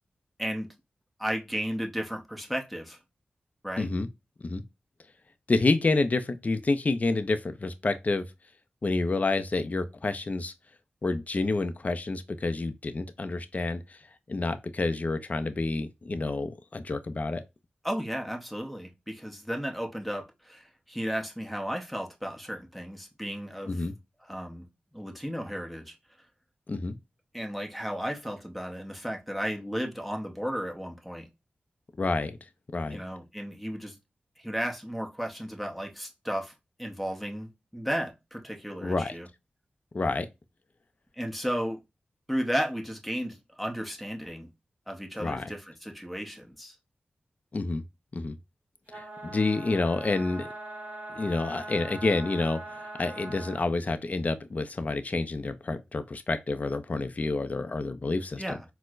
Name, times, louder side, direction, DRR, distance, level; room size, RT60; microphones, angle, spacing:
voice 1, 1.2-3.0 3.6-3.9 17.8-23.9 24.2-24.7 24.9-26.0 27.3-31.3 32.9-34.0 34.4-39.3 41.1-41.8 42.3-44.5 44.9-46.8 58.4-58.6, equal, ahead, 0.8 m, -34 dB
voice 2, 3.8-4.1 4.4-4.6 5.5-8.2 8.8-10.5 11.0-14.0 14.3-17.4 23.7-23.9 26.7-27.0 32.0-32.4 32.7-33.0 38.8-39.1 39.9-40.3 45.2-45.5 47.5-47.8 48.1-48.4 48.9-50.5 51.1-58.6, left 3 dB, 40° left, 0.4 m, -29 dB
sound 1, 48.9-53.7, right 2 dB, 35° right, 1.7 m, -41 dB
4.2 x 2.1 x 2.4 m
cardioid pair, 50°, 4 cm